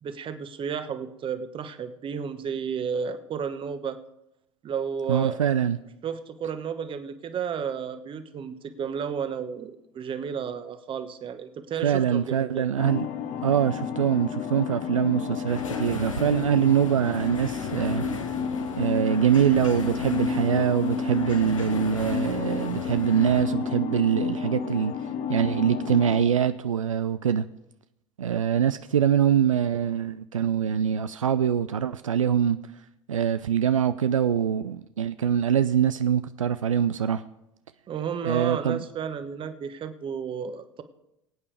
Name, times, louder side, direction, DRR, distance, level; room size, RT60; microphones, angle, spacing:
voice 1, 0.0-4.0 4.6-5.4 6.0-12.7 37.9-40.8, right 7 dB, 30° right, 10 dB, 1.1 m, -32 dB
voice 2, 5.1-5.8 11.8-13.1 13.4-18.1 18.8-24.9 25.3-27.5 28.2-32.6 33.1-37.2 38.2-38.8, right 8 dB, 80° right, 12 dB, 0.4 m, -24 dB
sound 1, 12.8-26.2, left 6 dB, 45° left, 1.0 m, -31 dB
sound 2, 15.5-23.5, left 3 dB, 85° left, 1.4 m, -37 dB
22.0 x 8.7 x 3.4 m, 0.85 s
figure-of-eight pair, 75°, 16 cm